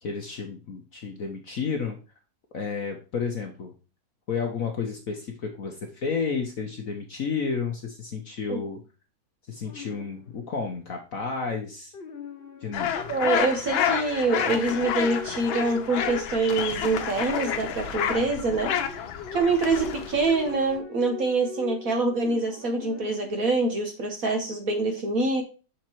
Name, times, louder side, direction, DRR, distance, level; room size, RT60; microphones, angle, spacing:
voice 1, 0.0-2.0 2.5-3.7 4.3-8.8 9.5-11.9 12.6-12.9, left 5 dB, 50° left, 3 dB, 1.1 m, -31 dB
sound 1, 9.6-10.5 11.9-23.3, left 7 dB, 90° left, 0.5 m, -42 dB
sound 2, 12.7-20.8, left 8 dB, 75° left, 1.6 m, -30 dB
voice 2, 13.1-18.7 19.3-25.4, right 3 dB, 50° right, 3 dB, 1.3 m, -25 dB
6.5 x 4.4 x 4.5 m, 0.33 s
omnidirectional pair, 2.3 m